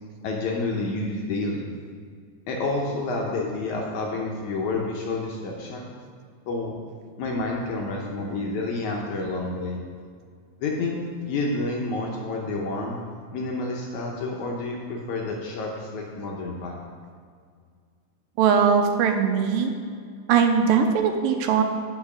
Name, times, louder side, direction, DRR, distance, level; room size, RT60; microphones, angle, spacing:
voice 1, 0.2-1.6 2.5-5.9 6.5-6.8 7.2-9.8 10.6-13.0 13.3-16.8, left 2 dB, 75° left, -1 dB, 1.8 m, -29 dB
voice 2, 18.4-19.7 20.3-21.6, right 6 dB, 85° right, 5 dB, 2.3 m, -20 dB
8.8 x 5.5 x 5.9 m, 2.1 s
omnidirectional pair, 4.1 m